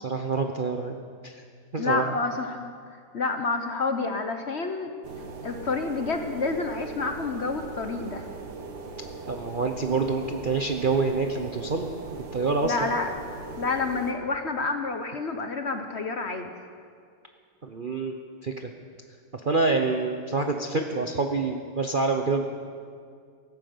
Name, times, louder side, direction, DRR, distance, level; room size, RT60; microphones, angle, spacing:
voice 1, 0.0-1.4 1.7-2.1 9.3-12.9 17.6-18.1 18.4-18.7 19.4-22.4, right 4 dB, 45° right, 4 dB, 0.7 m, -27 dB
voice 2, 1.8-2.7 3.1-4.9 5.4-8.2 12.6-13.1 13.6-16.5, left 4 dB, 45° left, 6 dB, 1.0 m, -29 dB
sound 1, 5.0-14.1, right 3 dB, 70° right, 2.0 m, -40 dB
15.5 x 12.0 x 7.8 m, 2.2 s
omnidirectional pair, 1.9 m